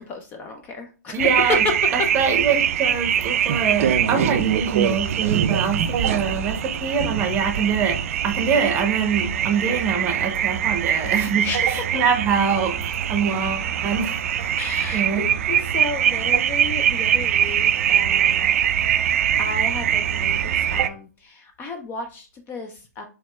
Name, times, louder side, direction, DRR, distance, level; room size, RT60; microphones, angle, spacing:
voice 1, 0.0-1.7 11.4-12.0 14.6-18.6 19.4-23.0, left 3 dB, 20° left, 0.4 m, -32 dB
voice 2, 1.1-1.6 2.1-14.6 14.9-15.3, right 6 dB, 20° right, 0.8 m, -24 dB
sound 1, 1.2-20.9, right 9 dB, 50° right, 0.3 m, -23 dB
4.5 x 3.0 x 2.2 m
hypercardioid pair, 130°, 9 cm